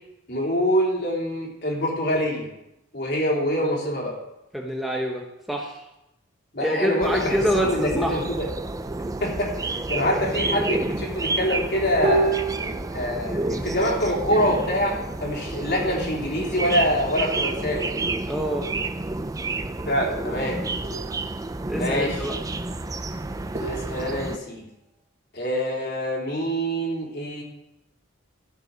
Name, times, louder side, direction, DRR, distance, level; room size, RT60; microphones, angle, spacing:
voice 1, 0.3-2.5 2.9-4.1 6.5-8.5 9.2-12.4 12.9-17.9 19.9-20.6 21.8-22.2 23.6-24.6 25.3-27.4, equal, 55° left, -3 dB, 3.3 m, -25 dB
voice 2, 4.5-5.8 6.6-8.2 18.3-18.7 21.7-22.4, equal, ahead, -1 dB, 1.0 m, -26 dB
sound 1, 7.0-24.4, right 2 dB, 15° right, 0.4 m, -30 dB
sound 2, 9.2-9.3 9.7-9.9 10.1-11.4 12.0-15.2 15.7-16.6 19.6-19.7 20.8-21.4 22.5-22.6 23.5-24.7, right 3 dB, 35° right, 2.9 m, -32 dB
13.5 x 7.7 x 5.3 m, 0.88 s
head